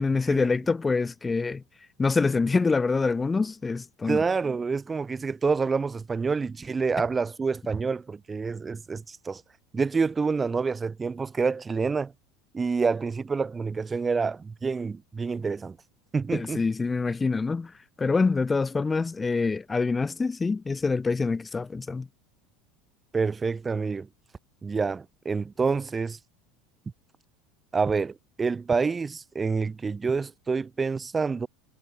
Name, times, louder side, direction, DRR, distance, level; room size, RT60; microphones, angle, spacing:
voice 1, 0.0-1.6 2.0-4.2 16.3-17.7 18.0-22.1, left 4 dB, 20° left, 1.7 m, -25 dB
voice 2, 4.1-9.4 9.7-12.1 12.5-15.8 16.1-16.6 23.1-24.1 24.6-26.2 27.7-31.5, right 4 dB, 20° right, 1.8 m, -27 dB
hypercardioid pair, 75°, 0 cm